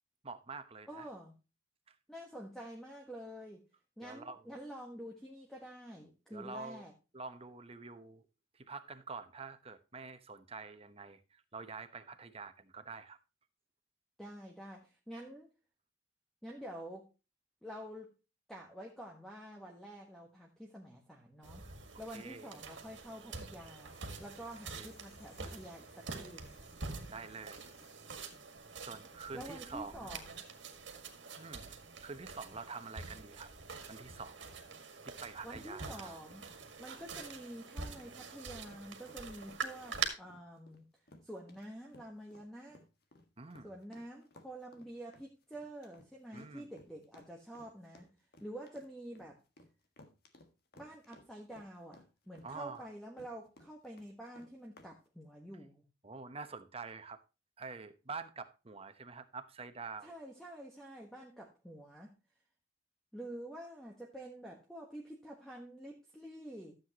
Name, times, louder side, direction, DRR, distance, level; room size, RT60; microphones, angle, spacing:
voice 1, 0.2-1.1 1.9-2.0 4.0-4.5 6.3-6.8 7.1-8.2 8.5-13.2 21.6-21.7 22.1-22.5 24.7-24.9 27.1-27.6 28.8-30.2 31.4-33.5 33.9-34.4 35.0-36.2 43.4-43.7 46.3-46.7 52.4-52.9 56.0-57.2 57.6-60.1, right 4 dB, 30° right, 0.9 m, -47 dB
voice 2, 0.9-1.3 2.1-3.6 4.0-6.9 14.2-15.5 16.4-17.1 17.6-18.1 18.5-21.7 22.0-26.6 29.3-30.4 35.4-36.4 36.8-40.8 41.2-42.8 43.6-48.1 48.4-49.4 50.8-55.8 60.0-62.1 63.1-66.7, right 1 dB, ahead, 1.3 m, -48 dB
sound 1, 21.4-40.1, right 5 dB, 75° right, 1.8 m, -45 dB
sound 2, 23.9-28.7, left 2 dB, 35° left, 1.9 m, -63 dB
sound 3, 36.6-54.9, left 1 dB, 55° left, 1.5 m, -60 dB
13.0 x 7.8 x 2.9 m
head